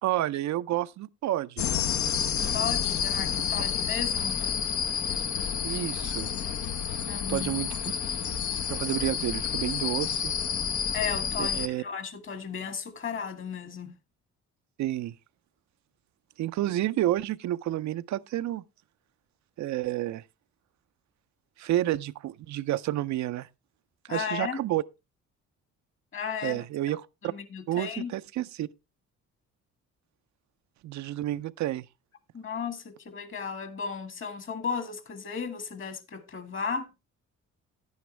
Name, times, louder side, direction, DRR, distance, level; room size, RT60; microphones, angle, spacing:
voice 1, 0.0-1.7 5.6-6.3 7.3-7.8 8.7-10.3 11.4-11.8 14.8-15.1 16.4-18.6 19.6-20.2 21.6-23.5 24.1-24.8 26.4-27.3 27.7-28.7 30.8-31.8, right 14 dB, 70° right, 0.5 m, -30 dB
sound 1, 1.6-11.7, left 8 dB, 70° left, 0.8 m, -29 dB
voice 2, 2.5-4.4 7.1-7.5 10.9-13.9 24.1-24.6 26.1-26.6 27.2-28.1 32.3-36.9, left 6 dB, 40° left, 1.7 m, -35 dB
10.5 x 9.5 x 3.2 m
cardioid pair, 90°, 30 cm